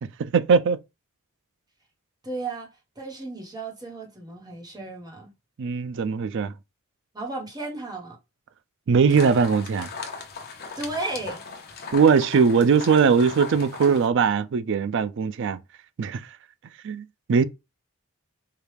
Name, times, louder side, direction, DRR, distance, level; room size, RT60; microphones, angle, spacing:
voice 1, 0.2-0.8 5.6-6.5 8.9-9.9 11.9-15.6 16.0-16.2 16.8-17.4, right 5 dB, 60° right, 0.4 m, -20 dB
voice 2, 2.2-2.7 3.0-5.3 7.1-8.2 10.8-11.4, right 2 dB, 20° right, 1.2 m, -34 dB
sound 1, 9.1-14.1, left 5 dB, 50° left, 0.8 m, -37 dB
4.6 x 2.3 x 3.3 m
head